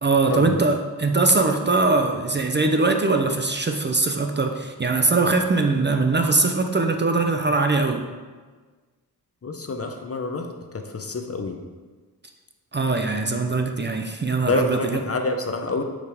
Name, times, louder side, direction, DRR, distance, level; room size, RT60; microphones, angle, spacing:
voice 1, 0.0-8.0 12.7-15.0, right 3 dB, 30° right, 4 dB, 0.6 m, -21 dB
voice 2, 9.4-10.5 10.9-11.6 14.4-15.8, left 2 dB, 35° left, 4 dB, 0.8 m, -27 dB
10.0 x 4.9 x 3.5 m, 1.4 s
wide cardioid pair, 90°, 39 cm